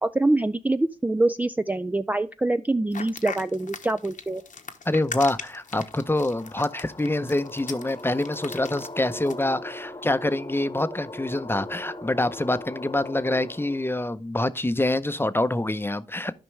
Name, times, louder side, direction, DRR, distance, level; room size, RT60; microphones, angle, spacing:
voice 1, 0.0-4.4, right 2 dB, 10° right, 0.4 m, -25 dB
sound 1, 2.9-9.4, left 5 dB, 65° left, 1.0 m, -39 dB
voice 2, 4.9-16.3, left 1 dB, 15° left, 0.7 m, -26 dB
sound 2, 5.6-14.0, left 1 dB, 30° left, 1.0 m, -40 dB
12.5 x 5.1 x 3.3 m
cardioid pair, 50°, 15 cm